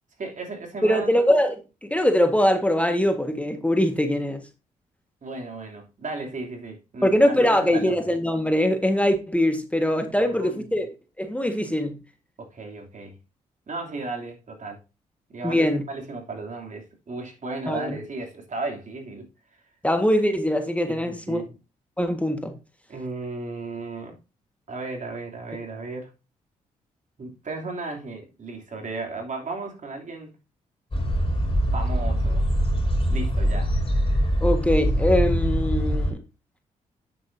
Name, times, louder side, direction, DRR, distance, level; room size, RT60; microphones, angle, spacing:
voice 1, 0.2-1.2 5.2-7.9 10.2-10.6 12.4-13.1 13.7-14.8 15.3-19.3 20.9-21.6 22.9-24.2 24.7-26.1 27.2-30.4 31.7-32.5 33.1-33.8, right 3 dB, 50° right, 3.1 m, -35 dB
voice 2, 0.8-4.4 7.0-12.0 15.4-15.8 17.7-18.0 19.8-21.4 22.0-22.6 34.4-36.2, left 1 dB, 10° left, 1.6 m, -22 dB
sound 1, 30.9-36.1, equal, 35° left, 4.4 m, -23 dB
9.2 x 8.0 x 2.7 m
supercardioid pair, 50°, 16 cm